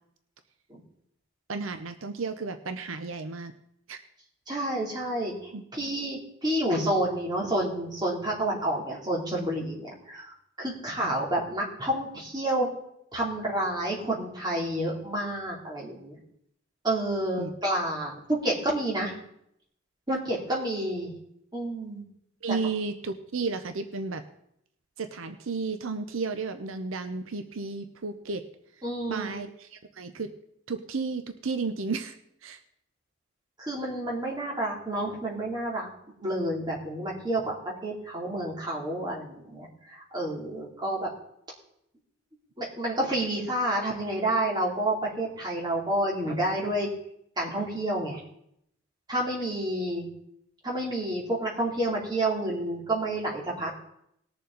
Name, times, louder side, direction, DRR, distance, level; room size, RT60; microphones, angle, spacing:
voice 1, 1.5-3.5 3.9-4.0 5.5-5.6 11.0-11.1 17.4-17.5 22.4-24.2 25.0-28.4 29.1-30.3 30.7-32.2 32.4-32.6, right 4 dB, 80° right, 9 dB, 0.7 m, -33 dB
voice 2, 4.5-12.7 13.1-16.2 16.8-19.2 20.1-21.1 21.5-22.0 28.8-29.3 33.6-35.9 36.2-37.5 37.8-41.1 42.6-46.9 47.4-48.2 49.1-50.1 50.6-53.8, right 1 dB, 20° right, -3 dB, 2.9 m, -29 dB
19.5 x 6.9 x 3.9 m, 0.74 s
head